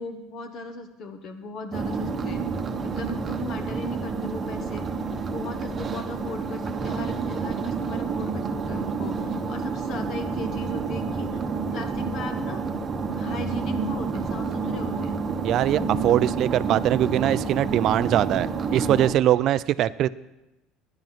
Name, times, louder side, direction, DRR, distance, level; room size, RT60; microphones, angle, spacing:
voice 1, 0.0-2.4 2.8-4.9 5.2-11.4 11.7-12.6 13.1-15.1, left 2 dB, 50° left, 7 dB, 1.5 m, -37 dB
sound 1, 1.7-19.1, right 4 dB, 25° right, 1.1 m, -29 dB
voice 2, 15.4-20.1, right 12 dB, 50° right, 16 dB, 0.4 m, -22 dB
11.0 x 10.5 x 6.0 m, 0.95 s
supercardioid pair, 125°, 0 cm